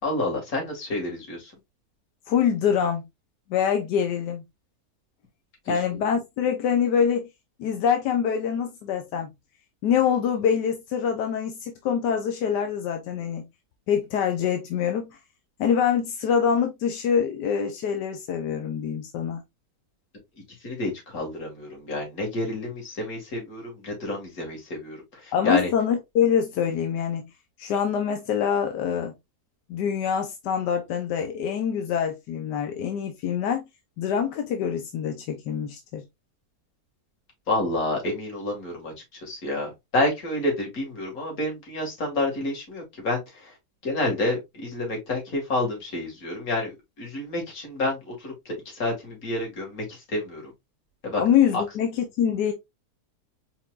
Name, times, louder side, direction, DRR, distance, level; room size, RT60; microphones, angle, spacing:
voice 1, 0.0-1.5 5.7-6.0 20.6-25.7 37.5-38.9 39.2-43.5 43.8-50.5 51.0-51.2 51.5-51.6, left 2 dB, 60° left, 2.5 m, -29 dB
voice 2, 2.3-3.0 3.5-4.4 5.7-7.3 7.6-9.3 9.8-13.5 13.9-15.2 15.6-19.4 25.3-27.3 27.6-29.1 29.7-33.6 34.0-36.0 51.2-52.5, left 8 dB, 90° left, 1.4 m, -25 dB
4.6 x 4.3 x 2.4 m
omnidirectional pair, 1.8 m